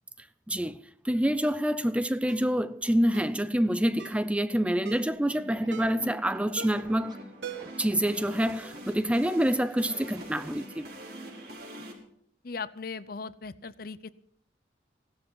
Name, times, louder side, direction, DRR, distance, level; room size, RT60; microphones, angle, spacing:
voice 1, 0.5-7.3 7.8-10.9, equal, 5° right, 0.5 m, -27 dB
Ringtone, 1.4-1.6 2.3-2.5 3.1-3.4 4.0-4.3 4.9-5.1 5.7-6.1 6.6-7.0 7.4-7.9 8.2-8.3, right 6 dB, 85° right, 0.9 m, -43 dB
sound 1, 5.1-11.9, right 1 dB, 60° right, 4.3 m, -44 dB
Scratching (performance technique), 5.3-7.2 7.6-9.2 9.9-10.5, right 1 dB, 25° right, 1.4 m, -51 dB
voice 2, 12.4-14.1, left 4 dB, 55° left, 0.7 m, -38 dB
17.0 x 12.5 x 5.5 m
head